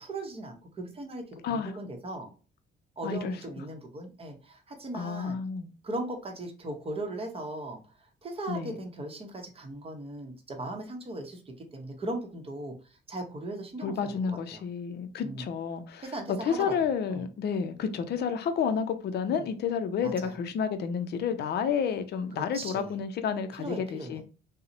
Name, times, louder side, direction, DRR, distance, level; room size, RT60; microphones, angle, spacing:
voice 1, 0.0-2.3 3.0-5.4 5.8-7.8 8.2-12.8 13.1-14.6 15.2-15.5 16.0-16.7 17.1-17.3 19.1-19.5 20.0-20.3 22.3-23.0 23.6-24.2, right 1 dB, 30° right, 0.7 m, -38 dB
voice 2, 1.4-1.8 3.0-3.4 4.9-5.7 8.5-8.8 13.8-16.1 16.4-24.2, left 6 dB, 55° left, 0.4 m, -30 dB
2.7 x 2.0 x 2.5 m
cardioid pair, 90°, 20 cm